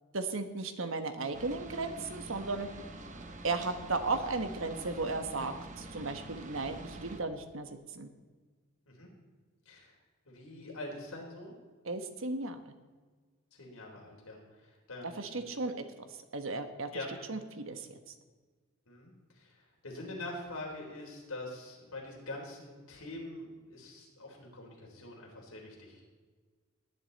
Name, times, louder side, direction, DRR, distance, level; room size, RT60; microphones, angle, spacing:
voice 1, 0.1-2.7 3.4-8.1 11.8-12.6 15.2-15.8 16.3-17.0 17.3-18.0, right 3 dB, 70° right, 8 dB, 1.3 m, -35 dB
sound 1, 1.3-7.2, right 2 dB, 35° right, 1.1 m, -46 dB
voice 2, 10.3-11.6 13.6-14.4 14.9-15.5 16.9-17.1 18.9-19.5 19.8-26.2, left 2 dB, 85° left, -1 dB, 3.9 m, -44 dB
18.5 x 10.0 x 4.2 m, 1.4 s
head